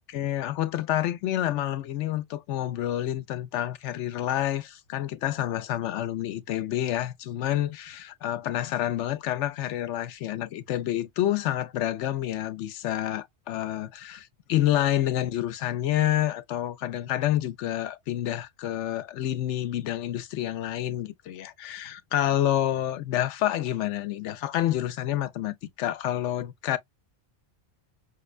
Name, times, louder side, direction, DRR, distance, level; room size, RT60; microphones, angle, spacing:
voice 1, 0.1-26.8, left 12 dB, 85° left, 0.9 m, -28 dB
5.2 x 2.1 x 2.3 m
omnidirectional pair, 1.2 m